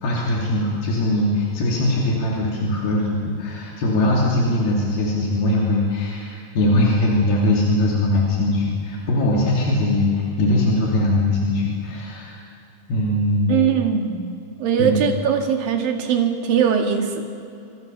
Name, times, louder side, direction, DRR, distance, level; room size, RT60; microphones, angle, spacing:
voice 1, 0.0-12.4 12.9-13.6 14.8-15.0, left 1 dB, 80° left, -3 dB, 4.9 m, -21 dB
voice 2, 13.5-17.3, right 7 dB, 70° right, 4 dB, 3.8 m, -21 dB
26.0 x 24.0 x 7.0 m, 2.6 s
omnidirectional pair, 4.3 m